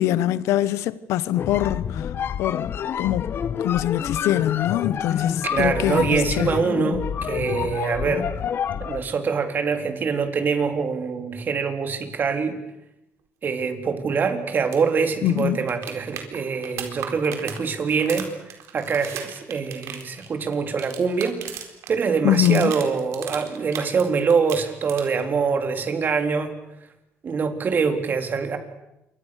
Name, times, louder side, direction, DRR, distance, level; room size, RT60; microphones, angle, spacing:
voice 1, 0.0-2.1 2.4-2.7 3.0-3.3 3.6-6.5 15.2-15.6 22.2-22.7, left 13 dB, 85° left, 1.1 m, -23 dB
sound 1, 1.3-9.1, left 8 dB, 55° left, 1.2 m, -28 dB
voice 2, 5.4-8.3 8.8-12.6 13.4-18.3 18.7-21.4 21.9-26.5 27.2-28.6, right 5 dB, 40° right, 3.8 m, -24 dB
sound 2, 14.7-14.8 15.1-15.2 15.4-21.9 22.2-24.0 24.3-25.3 27.3-27.4, right 9 dB, 80° right, 4.2 m, -36 dB
28.0 x 25.0 x 6.7 m
cardioid pair, 105°, 5 cm